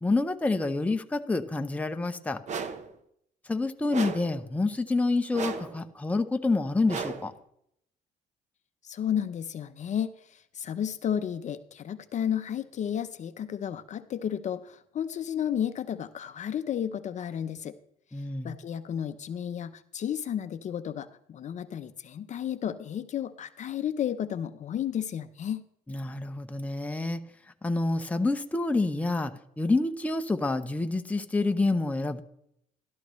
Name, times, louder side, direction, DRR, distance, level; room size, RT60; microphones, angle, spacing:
voice 1, 0.0-2.4 3.4-7.3 18.1-18.5 25.9-27.2 27.6-32.2, left 3 dB, 10° left, 6 dB, 0.7 m, -28 dB
sound 1, 2.5-2.9 3.9-4.4 5.3-5.8 6.9-7.4, right 5 dB, 45° right, 0.9 m, -35 dB
voice 2, 8.8-17.8 18.2-25.7, left 9 dB, 45° left, 10 dB, 0.6 m, -32 dB
12.5 x 12.5 x 3.1 m, 0.72 s
cardioid pair, 110°, 17 cm